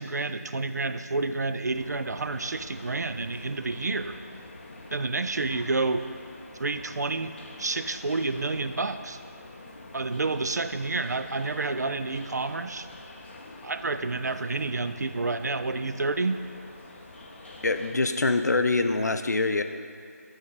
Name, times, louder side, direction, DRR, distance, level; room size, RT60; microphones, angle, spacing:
voice 1, 0.0-4.2 4.9-6.1 6.6-9.2 9.9-12.9 13.6-16.4, right 3 dB, 90° right, 10 dB, 0.4 m, -29 dB
sound 1, 1.7-17.9, left 2 dB, 40° left, 0.6 m, -46 dB
voice 2, 17.6-19.6, left 3 dB, 85° left, 8 dB, 0.4 m, -24 dB
8.4 x 3.6 x 4.0 m, 2.3 s
figure-of-eight pair, 165°, 9 cm